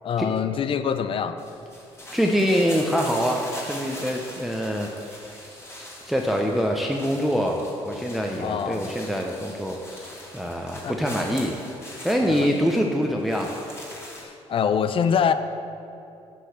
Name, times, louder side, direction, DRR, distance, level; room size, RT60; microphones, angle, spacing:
voice 1, 0.0-1.4 8.4-8.9 10.8-11.0 12.3-12.7 14.2-15.3, left 7 dB, 50° left, 11 dB, 0.5 m, -25 dB
sound 1, 1.4-14.2, left 1 dB, 25° left, 1.9 m, -42 dB
voice 2, 2.1-5.2 6.1-11.6 12.0-13.5, equal, ahead, 1 dB, 0.7 m, -25 dB
7.3 x 4.6 x 6.7 m, 2.8 s
cardioid pair, 75°, 11 cm